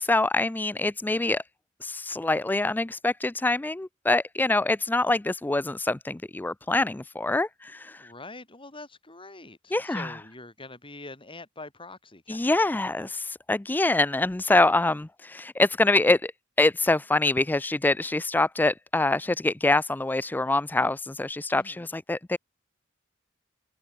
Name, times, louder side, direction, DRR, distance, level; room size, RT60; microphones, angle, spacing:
voice 1, 0.0-1.4 1.8-8.1 9.7-10.1 12.3-16.3 16.6-22.4, left 2 dB, 10° left, 0.3 m, -25 dB
voice 2, 8.0-12.6 21.5-21.9, left 2 dB, 25° left, 7.7 m, -44 dB
head